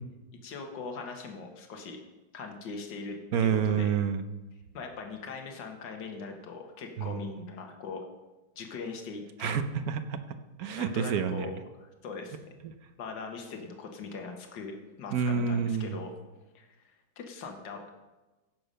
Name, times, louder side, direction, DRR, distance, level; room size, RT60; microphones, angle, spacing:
voice 1, 0.4-2.0 2.3-3.9 4.7-8.0 8.6-9.5 10.8-12.4 13.0-16.1 16.5-17.9, left 4 dB, 70° left, 3 dB, 2.0 m, -41 dB
voice 2, 3.3-4.2 7.0-7.2 9.4-10.2 10.6-11.5 12.6-12.7 15.1-16.0, right 7 dB, 60° right, 9 dB, 1.1 m, -28 dB
15.5 x 6.8 x 5.5 m, 1.1 s
omnidirectional pair, 2.1 m